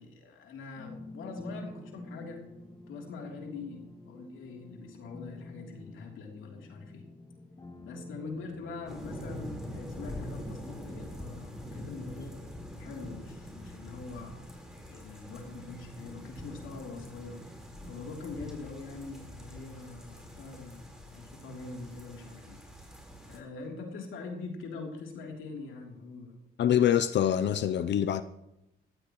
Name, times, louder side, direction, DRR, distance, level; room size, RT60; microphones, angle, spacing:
voice 1, 0.0-2.4 2.9-7.0 7.8-12.4 12.8-14.3 14.9-17.4 17.9-22.6 23.3-26.3, left 4 dB, 80° left, 3.3 m, -43 dB
sound 1, 0.8-17.3, left 1 dB, 20° left, 1.9 m, -50 dB
sound 2, 8.9-23.4, left 1 dB, 5° right, 4.3 m, -44 dB
voice 2, 26.6-28.2, left 10 dB, 60° left, 0.6 m, -25 dB
17.5 x 15.0 x 3.1 m
cardioid pair, 90°, 20 cm